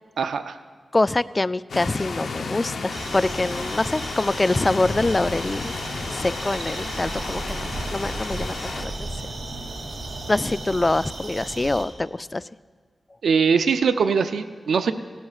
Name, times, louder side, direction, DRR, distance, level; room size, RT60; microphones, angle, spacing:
voice 1, 0.2-0.6 13.2-14.9, right 6 dB, 90° right, 10 dB, 0.4 m, -21 dB
voice 2, 0.9-5.7 6.1-9.1 10.3-12.4, left 2 dB, 35° left, 17 dB, 0.3 m, -25 dB
sound 1, 1.7-8.9, left 4 dB, 85° left, 0.7 m, -33 dB
sound 2, 2.9-11.8, right 2 dB, 75° right, 2.5 m, -34 dB
17.5 x 12.5 x 2.4 m, 1.5 s
cardioid pair, 40°, 0 cm